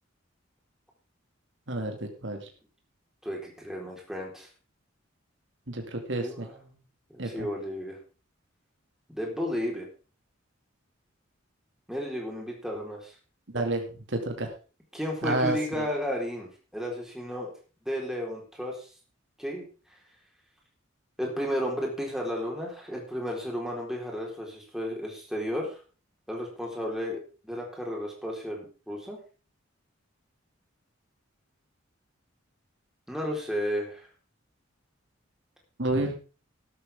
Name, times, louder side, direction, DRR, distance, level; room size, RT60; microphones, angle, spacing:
voice 1, 1.7-2.5 5.7-6.5 7.2-7.5 13.5-13.8 14.1-14.5 15.2-15.8 35.8-36.2, right 2 dB, 65° right, 3 dB, 2.4 m, -30 dB
voice 2, 3.2-4.5 6.2-6.8 7.1-8.0 9.1-9.9 11.9-13.1 13.6-13.7 14.9-17.5 17.9-18.9 19.4-19.6 21.2-25.8 26.3-29.2 33.1-34.1, equal, 5° right, -1 dB, 4.3 m, -33 dB
13.0 x 12.5 x 3.7 m, 0.35 s
head